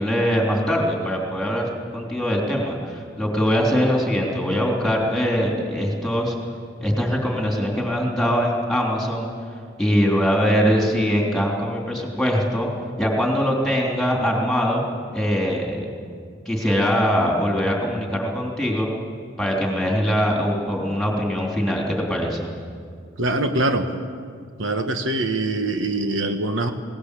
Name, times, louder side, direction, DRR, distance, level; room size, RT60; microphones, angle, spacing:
voice 1, 0.0-6.3 6.8-9.3 9.8-12.7 13.0-14.8 15.1-15.9 16.4-18.9 19.4-22.5, equal, ahead, -1 dB, 3.4 m, -22 dB
voice 2, 23.2-23.9 24.6-26.7, right 2 dB, 75° right, 6 dB, 1.4 m, -23 dB
20.0 x 18.5 x 8.4 m, 2.1 s
head